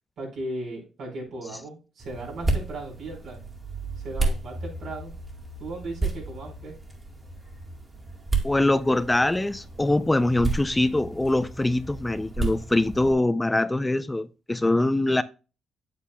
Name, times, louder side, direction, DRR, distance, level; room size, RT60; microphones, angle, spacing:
voice 1, 0.2-3.4 4.0-5.1 5.6-6.7, right 2 dB, 75° right, 4.4 m, -37 dB
sound 1, 2.0-13.1, right 3 dB, 25° right, 2.0 m, -32 dB
voice 2, 8.4-15.2, left 2 dB, 15° left, 0.4 m, -23 dB
8.2 x 8.1 x 2.2 m
cardioid pair, 90°, 0 cm